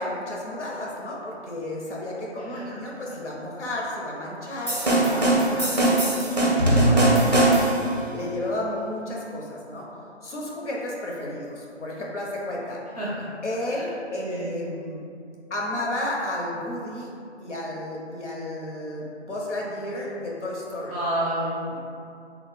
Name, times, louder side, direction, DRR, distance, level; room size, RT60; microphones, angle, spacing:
voice 1, 0.0-5.8 6.6-7.6 8.1-9.9 10.2-12.8 13.4-15.0 15.5-17.1 17.4-20.9 21.7-21.8, left 1 dB, 75° left, -3 dB, 0.9 m, -32 dB
sound 1, 4.7-7.9, right 1 dB, 35° right, 0.5 m, -20 dB
voice 2, 14.2-14.5 20.9-21.8, right 1 dB, 35° left, -9 dB, 0.5 m, -29 dB
3.1 x 2.3 x 3.6 m, 2.5 s
figure-of-eight pair, 170°, 36 cm